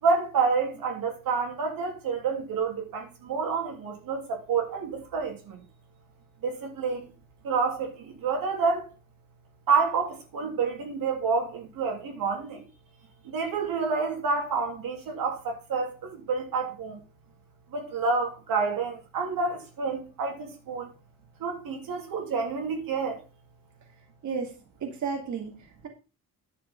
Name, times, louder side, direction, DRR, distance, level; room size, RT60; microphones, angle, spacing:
voice 1, 0.0-5.6 6.4-7.0 7.4-8.9 9.7-12.6 13.2-17.0 17.7-20.9 21.4-23.2, right 4 dB, 80° right, 3.0 m, -28 dB
voice 2, 24.2-24.5 24.8-25.9, right 5 dB, 60° right, 2.4 m, -33 dB
11.0 x 5.8 x 5.2 m
cardioid pair, 135°, 34 cm